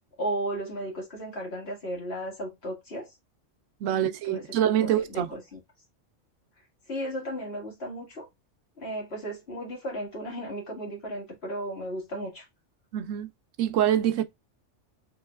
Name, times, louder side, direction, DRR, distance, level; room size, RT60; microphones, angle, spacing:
voice 1, 0.2-3.1 3.9-4.5 4.8-5.6 6.9-8.3 8.8-12.5, right 1 dB, 55° left, 2.0 m, -35 dB
voice 2, 3.8-5.3 12.9-13.3 13.6-14.2, right 11 dB, 85° right, 1.0 m, -25 dB
4.4 x 3.1 x 2.2 m
omnidirectional pair, 1.3 m